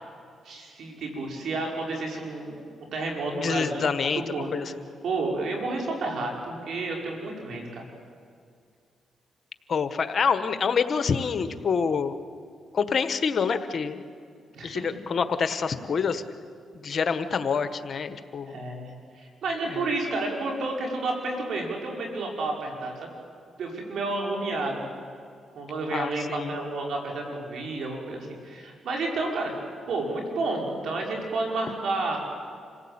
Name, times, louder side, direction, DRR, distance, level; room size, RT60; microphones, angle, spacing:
voice 1, 0.4-2.6 2.9-4.8 5.0-7.8 14.5-15.0 18.5-23.1 23.6-24.8 25.6-32.2, right 2 dB, 70° right, 0 dB, 5.4 m, -31 dB
voice 2, 3.3-4.2 4.5-4.7 9.7-12.1 12.7-14.0 14.6-16.2 16.8-18.5 19.7-19.8 25.9-26.6, left 6 dB, 55° left, 11 dB, 1.4 m, -26 dB
27.0 x 16.5 x 8.9 m, 2.3 s
cardioid pair, 65°, 0 cm